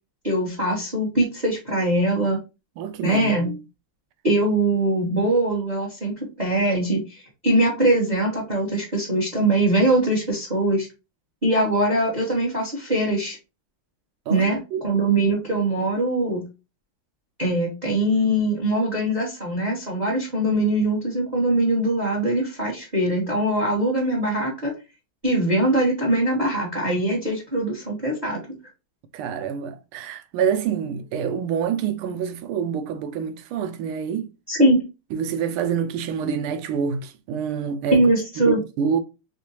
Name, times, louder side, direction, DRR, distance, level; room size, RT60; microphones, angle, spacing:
voice 1, 0.2-2.4 3.0-3.5 4.2-10.9 11.4-13.4 14.3-16.4 17.4-24.7 25.2-28.4 34.5-34.8 37.9-38.6, right 1 dB, 30° right, 0.9 m, -22 dB
voice 2, 2.8-3.5 14.3-14.8 29.1-34.3 35.1-38.1 38.4-39.0, right 7 dB, 80° right, 1.4 m, -27 dB
3.7 x 3.5 x 2.7 m
omnidirectional pair, 2.4 m